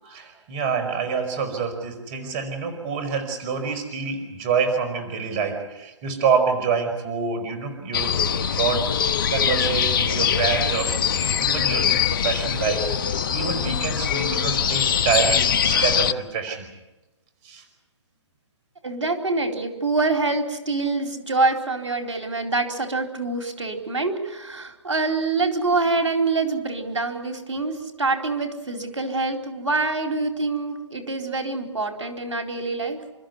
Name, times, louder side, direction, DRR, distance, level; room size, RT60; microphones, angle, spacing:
voice 1, 0.0-8.2 8.6-8.9 9.3-16.7 17.4-17.7, right 6 dB, 30° right, 7 dB, 5.2 m, -26 dB
sound 1, 7.9-16.1, left 8 dB, 45° left, 1.3 m, -23 dB
voice 2, 18.8-33.0, right 3 dB, 85° right, 4 dB, 4.3 m, -25 dB
30.0 x 14.5 x 9.6 m, 1.1 s
hypercardioid pair, 145°, 15 cm